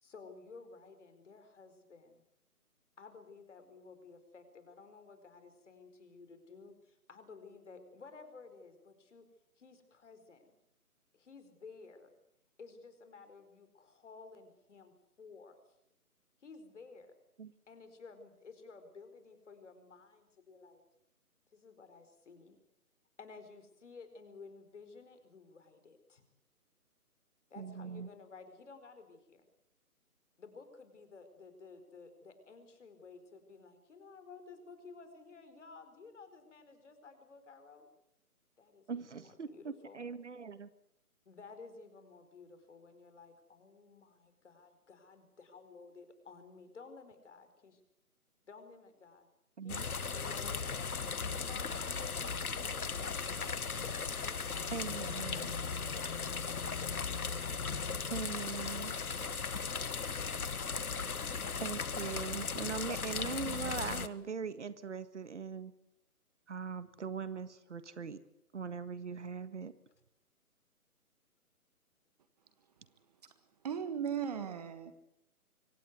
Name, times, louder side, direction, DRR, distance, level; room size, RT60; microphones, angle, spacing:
voice 1, 0.0-2.2 3.0-9.3 9.6-10.5 11.1-12.1 12.6-15.6 16.4-17.1 17.7-20.8 21.5-22.6 23.2-26.2 27.5-29.5 30.4-37.9 38.6-40.0 41.2-47.8 48.4-49.3 49.6-52.2 52.6-53.6 54.2-55.5 55.8-56.8 58.2-59.2, left 4 dB, 50° left, 9 dB, 4.8 m, -54 dB
voice 2, 27.6-28.1 38.9-40.7 49.6-49.8 54.7-55.5 58.1-59.0 61.6-65.7 66.5-68.2 68.5-69.7, right 5 dB, 50° right, 13 dB, 1.7 m, -41 dB
sound 1, 49.7-64.1, left 5 dB, 70° left, 1.4 m, -37 dB
voice 3, 73.6-74.9, right 8 dB, 25° right, 11 dB, 1.6 m, -36 dB
24.5 x 18.0 x 8.1 m, 0.80 s
figure-of-eight pair, 150°, 45 cm